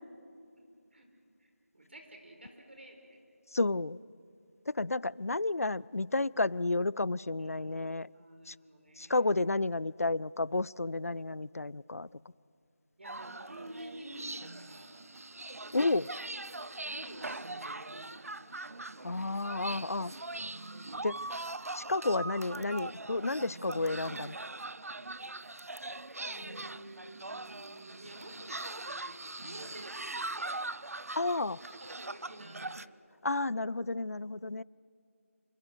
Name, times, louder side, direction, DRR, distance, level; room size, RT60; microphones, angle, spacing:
voice 1, 1.4-3.2 7.4-7.8 8.1-9.2 13.0-15.0 16.8-18.3 18.6-18.7 19.7-19.9 26.2-30.6 31.7-32.8, right 1 dB, 50° right, 3 dB, 4.8 m, -50 dB
voice 2, 3.5-4.0 4.7-8.1 8.5-8.6 9.0-12.1 15.7-16.1 19.0-20.1 21.0-21.2 21.7-24.4 31.1-31.6 33.2-34.6, left 2 dB, 90° left, 24 dB, 0.5 m, -31 dB
sound 1, 13.0-32.9, right 2 dB, 85° right, 0.7 m, -41 dB
28.0 x 24.5 x 6.3 m, 2.5 s
figure-of-eight pair, 175°, 8 cm